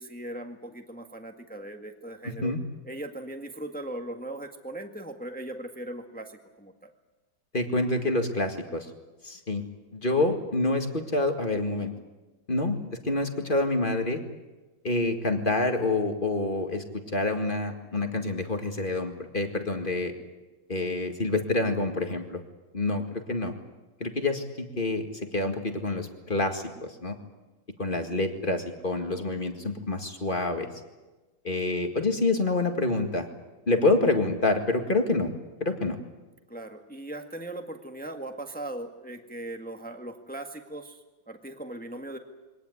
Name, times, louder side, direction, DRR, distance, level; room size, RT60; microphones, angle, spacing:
voice 1, 0.0-2.5 2.8-6.9 36.5-42.2, right 1 dB, 5° left, 4 dB, 1.5 m, -39 dB
voice 2, 2.2-2.6 7.5-8.9 9.2-9.6 9.9-11.9 12.5-14.2 14.8-20.1 20.7-22.4 22.7-23.5 24.0-25.1 25.3-27.2 27.8-30.7 31.4-33.3 33.7-35.3 35.6-36.0, left 2 dB, 25° left, 5 dB, 2.0 m, -27 dB
23.5 x 18.5 x 9.8 m, 1.2 s
omnidirectional pair, 2.1 m